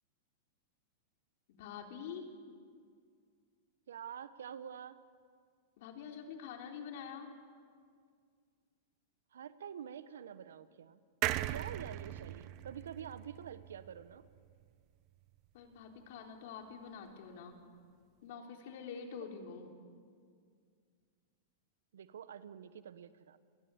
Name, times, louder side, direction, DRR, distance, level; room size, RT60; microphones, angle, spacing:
voice 1, 1.5-2.3 5.8-7.3 15.5-17.6 18.2-19.7, left 6 dB, 65° left, 3 dB, 3.9 m, -46 dB
voice 2, 3.9-5.0 9.3-11.0 11.5-14.3 21.9-23.4, right 8 dB, 80° right, 14 dB, 1.1 m, -47 dB
sound 1, 11.2-14.7 15.1-15.2 15.4-15.5, right 16 dB, 45° right, 0.9 m, -39 dB
28.5 x 21.0 x 7.2 m, 2.1 s
hypercardioid pair, 120°, 0 cm